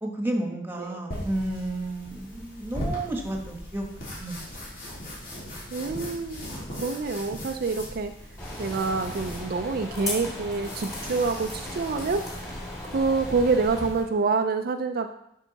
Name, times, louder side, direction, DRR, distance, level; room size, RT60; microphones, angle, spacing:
voice 1, 0.0-4.4, right 1 dB, 10° right, 1 dB, 1.3 m, -31 dB
sound 1, 1.1-14.0, equal, 50° left, 3.3 m, -39 dB
voice 2, 5.7-8.1 8.6-12.2 12.8-15.1, right 4 dB, 55° right, 6 dB, 0.4 m, -27 dB
sound 2, 8.4-13.9, left 1 dB, 15° left, 2.6 m, -37 dB
11.5 x 4.7 x 4.1 m, 0.79 s
head